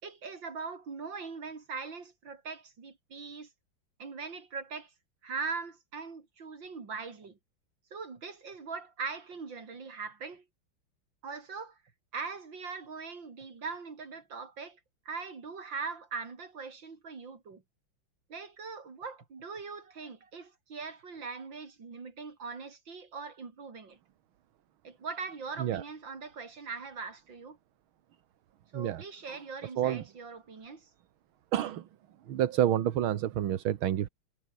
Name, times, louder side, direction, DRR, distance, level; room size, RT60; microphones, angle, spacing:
voice 1, 0.0-3.5 4.0-4.9 5.2-7.4 7.9-10.4 11.2-11.8 12.1-14.8 15.1-17.6 18.3-24.0 24.8-27.6 28.7-30.9, right 4 dB, 60° right, 4.0 m, -41 dB
voice 2, 31.5-31.9 32.3-34.1, right 11 dB, 75° right, 1.9 m, -28 dB
omnidirectional pair, 2.3 m